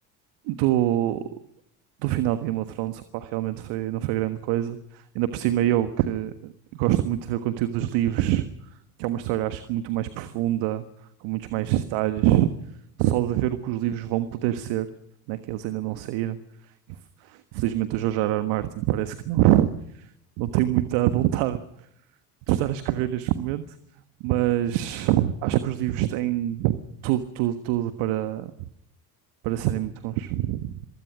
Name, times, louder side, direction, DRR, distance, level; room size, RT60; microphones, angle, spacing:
voice 1, 0.5-1.2 2.0-8.4 9.0-10.8 11.2-12.5 13.0-14.9 15.3-16.4 17.2-19.7 20.0-20.1 20.4-21.6 22.5-23.6 24.2-28.5 29.4-30.7, right 13 dB, 65° right, 11 dB, 1.5 m, -25 dB
24.0 x 21.5 x 6.2 m, 0.80 s
hypercardioid pair, 65°, 47 cm